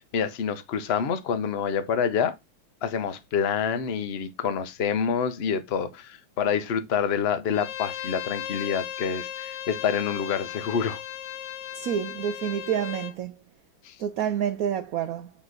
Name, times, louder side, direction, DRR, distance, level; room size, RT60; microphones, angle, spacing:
voice 1, 0.1-2.3 2.8-11.0 13.8-14.0, left 7 dB, 50° left, 0.8 m, -27 dB
Bowed string instrument, 7.5-13.1, left 10 dB, 75° left, 1.4 m, -36 dB
voice 2, 11.7-13.4 14.0-15.3, right 9 dB, 85° right, 0.7 m, -28 dB
8.7 x 3.2 x 3.8 m
omnidirectional pair, 2.1 m